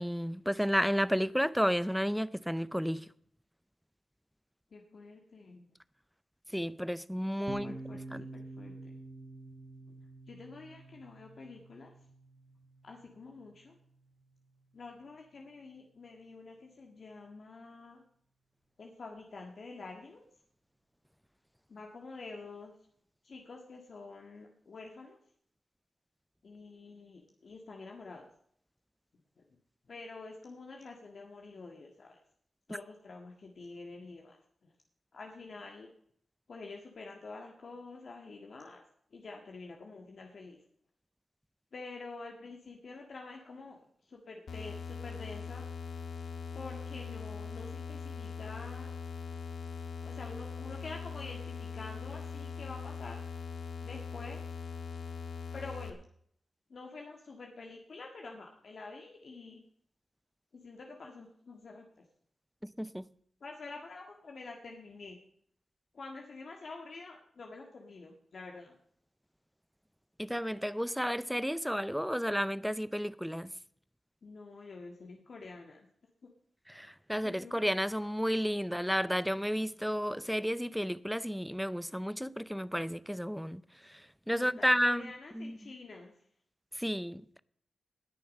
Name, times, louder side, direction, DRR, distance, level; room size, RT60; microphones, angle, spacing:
voice 1, 0.0-3.1 6.5-8.2 32.7-32.8 62.6-63.1 70.2-73.5 76.7-85.7 86.7-87.4, equal, ahead, 0.5 m, -32 dB
voice 2, 4.7-5.7 7.5-8.9 10.3-11.9 12.8-13.8 14.7-18.0 18.8-20.2 21.7-22.7 23.2-25.2 26.4-28.3 29.4-29.5 29.9-32.2 32.7-34.4 35.1-35.9 36.5-38.8 39.1-40.6 41.7-43.8 44.1-45.6 46.5-48.9 50.0-53.2 53.8-54.4 55.5-56.0 56.7-59.6 60.5-62.0 63.4-65.2 65.9-68.7 74.2-75.9 77.2-77.6 84.3-86.1, left 3 dB, 55° left, 1.7 m, -47 dB
Piano, 7.5-14.9, right 2 dB, 35° right, 1.6 m, -49 dB
sound 1, 44.5-55.9, left 6 dB, 75° left, 1.5 m, -41 dB
19.0 x 6.9 x 5.3 m
wide cardioid pair, 100°, 0 cm